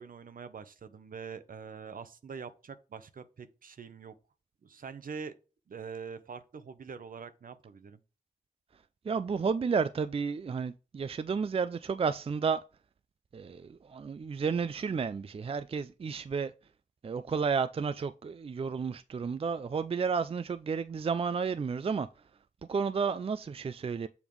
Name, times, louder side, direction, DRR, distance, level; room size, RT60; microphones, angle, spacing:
voice 1, 0.0-4.1 4.6-5.3 5.7-8.0, right 6 dB, 70° right, 0.7 m, -44 dB
voice 2, 9.0-12.6 13.3-16.5 17.0-22.1 22.7-24.1, right 5 dB, 40° right, 0.4 m, -32 dB
7.1 x 3.5 x 4.6 m
cardioid pair, 45°, 15 cm